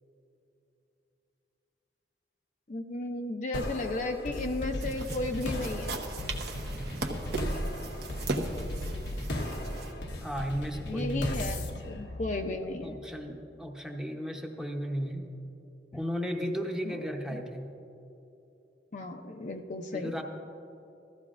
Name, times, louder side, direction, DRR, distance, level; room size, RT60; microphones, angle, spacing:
voice 1, 2.7-6.0 10.9-13.0 15.9-16.0 16.8-17.0 17.3-17.4 18.9-20.1, left 2 dB, 45° left, 4 dB, 0.5 m, -34 dB
sound 1, 3.5-13.0, left 1 dB, 90° left, 1.1 m, -36 dB
sound 2, 4.8-9.9, right 2 dB, 65° right, 1.0 m, -37 dB
voice 2, 10.2-11.4 12.8-15.3 15.9-17.7 19.9-20.2, equal, 5° right, 2 dB, 0.8 m, -34 dB
15.5 x 14.0 x 2.5 m, 2.9 s
head